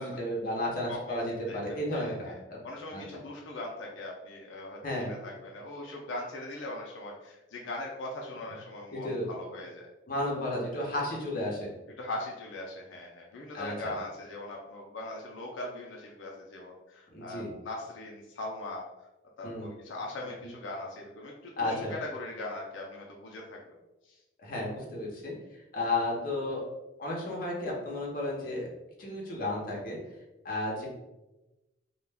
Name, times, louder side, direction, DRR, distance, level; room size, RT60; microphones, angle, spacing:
voice 1, 0.0-3.0 4.8-5.2 8.9-9.3 10.1-11.7 13.5-13.9 17.1-17.5 19.4-19.7 21.6-21.9 24.4-25.3 25.7-26.6 27.0-28.7 29.0-30.0 30.4-30.9, left 1 dB, 50° left, -3 dB, 0.7 m, -33 dB
voice 2, 0.9-2.4 2.6-9.9 12.0-18.8 19.4-23.7 24.0-24.2, left 2 dB, 85° left, -1 dB, 0.4 m, -40 dB
2.3 x 2.1 x 3.3 m, 1.0 s
head